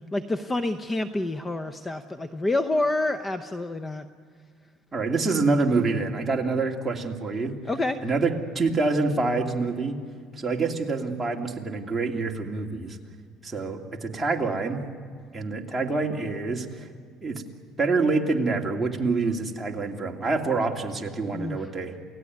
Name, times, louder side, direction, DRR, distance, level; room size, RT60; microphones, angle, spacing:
voice 1, 0.0-4.1 7.6-8.0 21.3-21.7, left 2 dB, 20° left, 9 dB, 0.8 m, -28 dB
voice 2, 4.9-7.5 8.0-10.0 10.4-13.0 13.4-14.8 15.3-16.9 17.2-17.4 17.8-21.9, right 3 dB, 15° right, 0 dB, 2.6 m, -26 dB
29.0 x 17.5 x 9.5 m, 2.1 s
cardioid pair, 120°, 0 cm